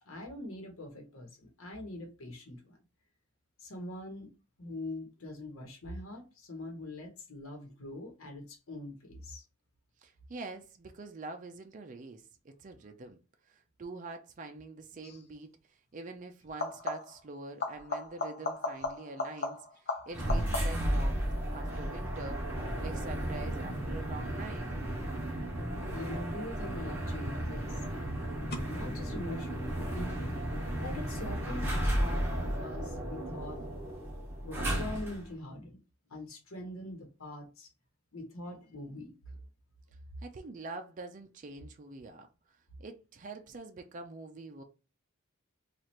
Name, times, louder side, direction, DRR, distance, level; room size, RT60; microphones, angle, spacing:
voice 1, 0.1-2.8 3.6-4.3 4.6-9.4 25.9-27.8 28.7-30.4 30.8-33.6 34.4-35.8 36.1-37.7 38.1-39.4, left 1 dB, 90° left, 1.1 m, -43 dB
voice 2, 10.0-13.2 13.5-21.3 21.5-22.4 22.8-24.7 40.2-44.6, right 3 dB, 40° right, 0.4 m, -45 dB
sound 1, 15.0-15.3 16.5-17.3 17.6-21.0 26.4-27.0 28.5-28.6, left 2 dB, 50° left, 0.7 m, -37 dB
sound 2, 20.1-35.3, right 1 dB, 10° right, 1.0 m, -34 dB
3.1 x 2.4 x 4.2 m
head